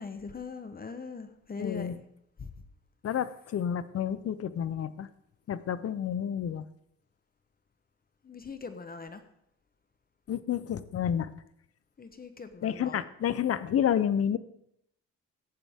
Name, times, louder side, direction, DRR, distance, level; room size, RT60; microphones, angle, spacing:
voice 1, 0.0-2.0 2.4-2.5 8.2-9.2 12.0-13.0, left 4 dB, 30° left, 9 dB, 1.0 m, -41 dB
voice 2, 1.6-2.0 3.0-5.1 5.5-6.6 10.3-11.3 12.6-14.4, left 9 dB, 50° left, 15 dB, 0.8 m, -30 dB
14.5 x 10.5 x 3.7 m, 0.75 s
cardioid pair, 90°, 30 cm